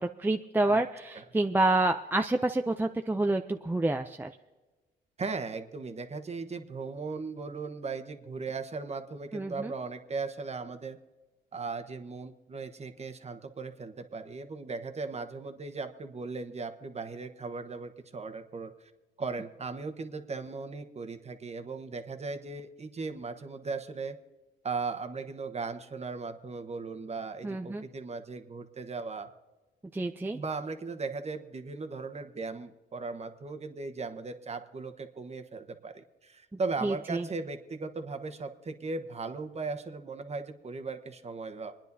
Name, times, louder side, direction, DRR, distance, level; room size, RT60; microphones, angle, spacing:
voice 1, 0.2-4.3 9.3-9.7 27.4-27.8 29.9-30.4 36.8-37.2, right 2 dB, 10° right, 5 dB, 0.5 m, -28 dB
voice 2, 5.2-11.0 11.5-18.9 19.2-24.2 24.6-29.3 30.3-41.7, right 4 dB, 35° right, 6 dB, 1.2 m, -37 dB
27.5 x 10.0 x 2.7 m, 1.2 s
cardioid pair, 90°, 20 cm